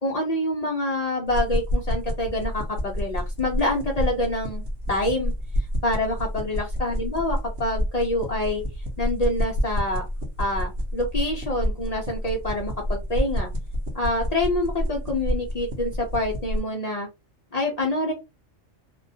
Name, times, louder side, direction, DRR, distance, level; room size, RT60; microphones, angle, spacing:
voice 1, 0.0-4.6 4.9-5.3 5.8-8.6 9.0-10.1 10.4-13.5 13.9-17.1 17.5-18.1, left 1 dB, 85° left, 0 dB, 0.3 m, -26 dB
sound 1, 1.3-16.6, equal, 60° right, 0.8 m, -29 dB
2.2 x 2.1 x 2.6 m, 0.25 s
omnidirectional pair, 1.3 m